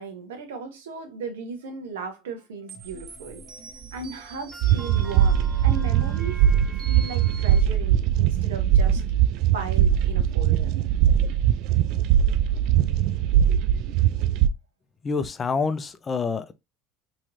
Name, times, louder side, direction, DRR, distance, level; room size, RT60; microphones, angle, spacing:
voice 1, 0.0-6.4 6.9-9.0 9.5-10.7, right 4 dB, 85° right, 0.9 m, -36 dB
sound 1, 2.7-7.6, right 4 dB, 40° right, 1.2 m, -43 dB
sound 2, 4.6-14.5, right 10 dB, 65° right, 0.3 m, -21 dB
voice 2, 15.0-16.5, left 4 dB, 30° left, 0.5 m, -27 dB
3.1 x 3.0 x 2.5 m
hypercardioid pair, 80°, 0 cm